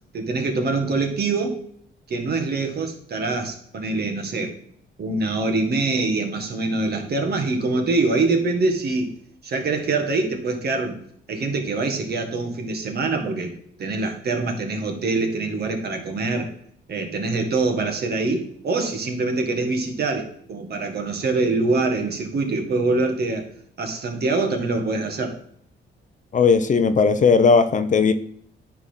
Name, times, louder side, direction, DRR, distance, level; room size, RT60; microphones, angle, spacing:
voice 1, 0.1-1.6 2.1-4.5 5.0-9.1 9.4-11.0 11.3-13.5 13.8-16.5 16.9-23.5 23.8-25.4, right 3 dB, 55° right, 4 dB, 1.7 m, -24 dB
voice 2, 26.3-28.1, left 5 dB, 40° left, 11 dB, 0.7 m, -17 dB
9.9 x 3.8 x 5.8 m, 0.64 s
cardioid pair, 90°, 20 cm